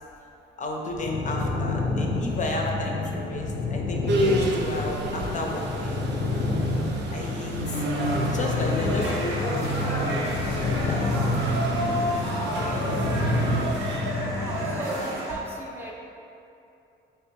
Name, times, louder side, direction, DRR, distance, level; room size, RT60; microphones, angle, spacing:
voice 1, 0.6-6.1 7.1-7.8 8.2-11.0 12.6-12.9, left 2 dB, 40° left, 0 dB, 0.5 m, -33 dB
sound 1, 1.0-14.8, left 3 dB, 85° left, 0.6 m, -29 dB
sound 2, 4.1-14.0, right 2 dB, 60° right, 0.5 m, -30 dB
sound 3, 7.7-15.3, right 1 dB, 80° right, 0.9 m, -31 dB
voice 2, 14.3-15.9, right 2 dB, 10° right, -4 dB, 0.4 m, -38 dB
3.5 x 2.9 x 3.1 m, 2.7 s
cardioid pair, 90°, 20 cm